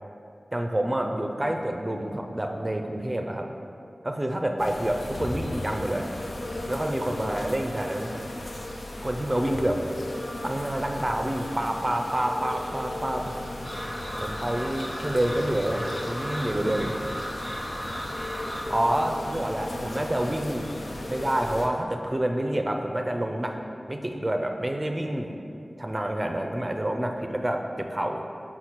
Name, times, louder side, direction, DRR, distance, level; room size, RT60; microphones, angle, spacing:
voice 1, 0.5-3.5 4.0-6.1 6.6-8.1 9.0-9.8 10.4-13.3 14.2-16.9 18.7-20.7 21.1-23.5 23.9-25.3 25.8-28.2, right 1 dB, 25° right, 3 dB, 0.5 m, -28 dB
sound 1, 4.6-21.7, left 1 dB, 85° left, 0.6 m, -37 dB
sound 2, 6.3-7.3 9.3-10.3 12.2-13.2 15.1-16.1 18.1-19.1 21.0-21.4, left 2 dB, 35° left, 0.5 m, -39 dB
sound 3, 13.6-18.6, equal, 10° left, 1.0 m, -35 dB
6.0 x 4.1 x 4.5 m, 2.6 s
wide cardioid pair, 50°, 0 cm